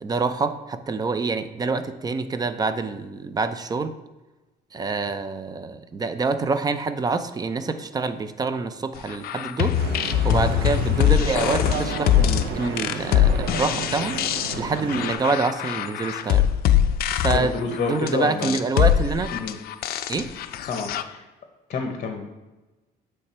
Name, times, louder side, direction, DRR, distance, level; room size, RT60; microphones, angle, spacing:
voice 1, 0.0-3.9 4.7-9.8 10.2-14.2 14.6-16.5 17.1-19.3 20.1-20.3, right 4 dB, 25° right, 10 dB, 0.5 m, -26 dB
sound 1, 9.1-21.0, left 11 dB, 65° left, 0.4 m, -23 dB
Stream / Boat Water vehicle, 9.7-15.1, right 5 dB, 80° right, 0.7 m, -32 dB
voice 2, 17.3-18.6 19.3-19.6 20.7-21.2 21.7-22.3, left 5 dB, 45° left, 3 dB, 0.9 m, -28 dB
8.1 x 3.2 x 4.3 m, 1.1 s
cardioid pair, 110°, 17 cm